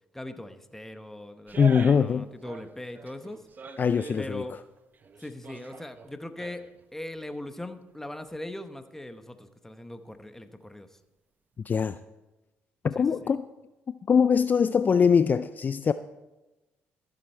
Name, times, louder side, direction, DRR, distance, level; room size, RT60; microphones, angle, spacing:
voice 1, 0.1-3.4 4.2-4.5 5.2-6.6 6.9-10.9 13.0-13.3, left 1 dB, 10° left, 1.0 m, -40 dB
sound 1, 1.5-2.2 2.4-4.2 4.8-6.8 7.2-7.3, right 5 dB, 40° right, 0.8 m, -43 dB
voice 2, 1.6-2.3 3.8-4.4 11.7-12.0 12.8-13.5 13.9-15.9, left 6 dB, 40° left, 0.4 m, -22 dB
13.5 x 7.8 x 4.5 m
supercardioid pair, 70°, 5 cm